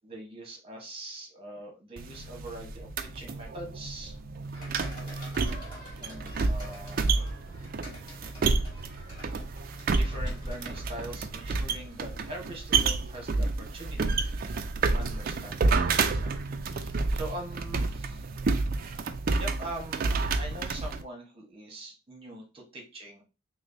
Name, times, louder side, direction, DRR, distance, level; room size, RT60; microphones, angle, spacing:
voice 1, 0.0-4.2 6.0-7.4 9.9-14.7 14.9-18.3 18.8-19.0 19.4-23.2, right 1 dB, 30° right, 1 dB, 1.1 m, -43 dB
sound 1, 2.0-21.0, right 3 dB, 45° right, 0.4 m, -30 dB
sound 2, 4.5-12.7, equal, 25° left, 2.2 m, -44 dB
6.0 x 2.1 x 2.6 m, 0.30 s
head